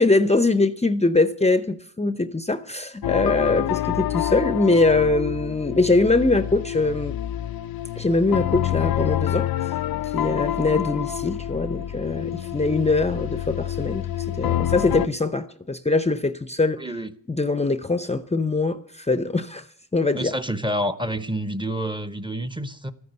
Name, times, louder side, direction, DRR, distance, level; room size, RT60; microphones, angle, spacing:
voice 1, 0.0-7.2 8.0-9.8 10.0-16.8 17.3-19.7 19.9-20.3, left 3 dB, 20° left, 0.7 m, -22 dB
sound 1, 3.0-15.1, left 12 dB, 85° left, 0.6 m, -27 dB
voice 2, 16.8-17.1 20.1-22.9, equal, 15° right, 0.9 m, -28 dB
14.0 x 9.5 x 8.0 m
wide cardioid pair, 105°, 35 cm